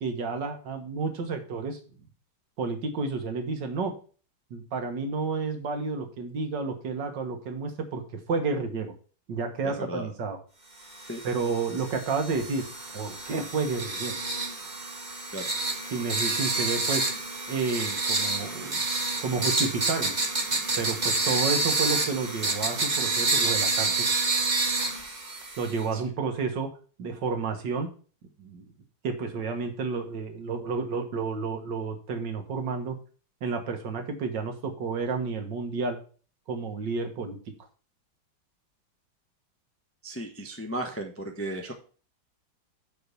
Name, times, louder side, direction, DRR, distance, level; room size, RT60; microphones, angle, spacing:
voice 1, 0.0-1.8 2.6-3.9 4.5-8.0 8.3-8.9 9.3-10.4 11.2-12.7 12.9-14.2 15.9-17.1 17.5-18.9 19.2-20.1 20.8-24.1 25.6-26.7 27.0-27.9 28.4-28.6 29.0-33.0 33.4-36.0 36.5-37.4, right 4 dB, 65° right, 6 dB, 1.9 m, -30 dB
voice 2, 9.6-10.1 11.1-11.2 15.3-15.5 25.9-26.0 40.0-41.7, right 1 dB, 10° left, 2 dB, 0.7 m, -35 dB
sound 1, 10.9-25.8, right 3 dB, 25° right, 1.4 m, -28 dB
7.0 x 5.1 x 6.8 m, 0.39 s
omnidirectional pair, 2.1 m